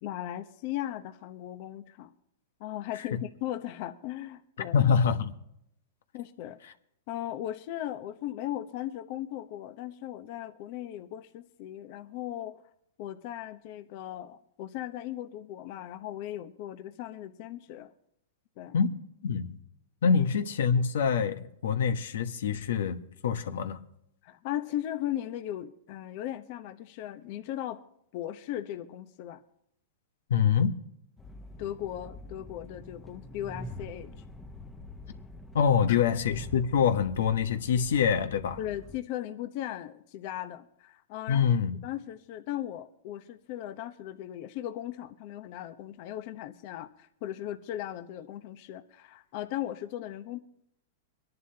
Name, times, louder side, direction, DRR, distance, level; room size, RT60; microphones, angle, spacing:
voice 1, 0.0-2.1 2.6-4.9 6.1-6.8 7.1-12.6 13.0-17.9 18.6-18.7 20.0-20.2 24.2-27.8 28.1-29.4 31.6-34.1 38.6-41.5 41.8-50.4, left 12 dB, 50° left, 0.9 m, -37 dB
voice 2, 4.7-5.3 18.7-18.9 19.2-19.6 20.0-23.8 30.3-30.8 35.5-38.6 41.3-41.8, left 7 dB, 80° left, 1.1 m, -25 dB
Train, 31.2-39.0, left 2 dB, 10° left, 1.0 m, -45 dB
24.0 x 11.0 x 2.9 m
hypercardioid pair, 130°, 0 cm